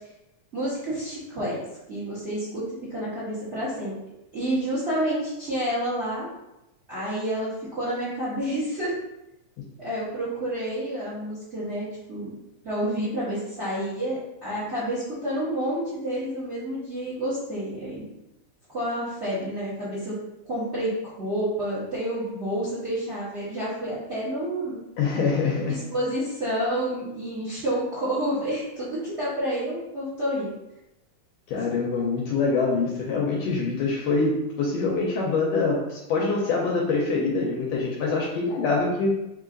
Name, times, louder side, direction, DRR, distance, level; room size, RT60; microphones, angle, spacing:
voice 1, 0.5-1.6 1.9-3.9 4.3-6.3 6.9-8.9 9.8-12.4 12.6-18.0 18.7-20.2 20.5-24.8 25.7-30.5, right 1 dB, 60° right, -10 dB, 0.6 m, -29 dB
voice 2, 25.0-25.8 31.5-39.1, left 4 dB, 80° left, -1 dB, 1.5 m, -25 dB
4.8 x 2.6 x 3.8 m, 0.91 s
omnidirectional pair, 3.5 m